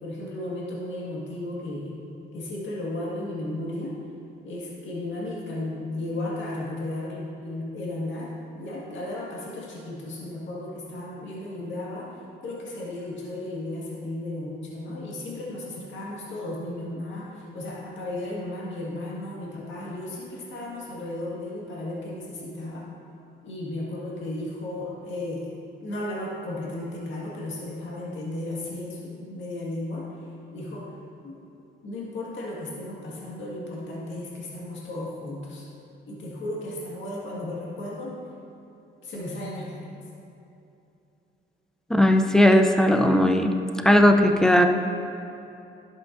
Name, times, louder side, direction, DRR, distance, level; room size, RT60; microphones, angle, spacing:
voice 1, 0.0-2.0 2.3-3.9 4.4-12.1 12.4-17.3 17.5-22.9 23.4-30.0 30.5-30.9 31.2-31.3 31.8-35.6 36.0-38.1 39.0-39.9, left 1 dB, 70° left, -5 dB, 1.8 m, -34 dB
voice 2, 41.9-43.6 43.8-44.7, left 1 dB, 5° left, 5 dB, 0.5 m, -17 dB
11.5 x 7.7 x 2.6 m, 2.7 s
cardioid pair, 90°, 20 cm